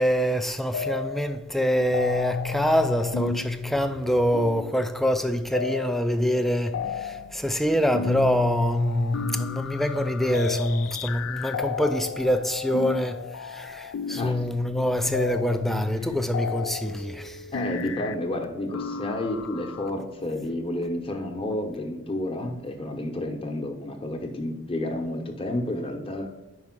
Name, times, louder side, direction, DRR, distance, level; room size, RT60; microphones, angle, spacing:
voice 1, 0.0-17.4, equal, ahead, 0.3 m, -25 dB
sound 1, 0.7-1.4 1.6-19.9, left 5 dB, 75° left, 0.4 m, -33 dB
voice 2, 17.5-26.3, left 1 dB, 25° left, 0.9 m, -30 dB
5.4 x 4.7 x 6.0 m
head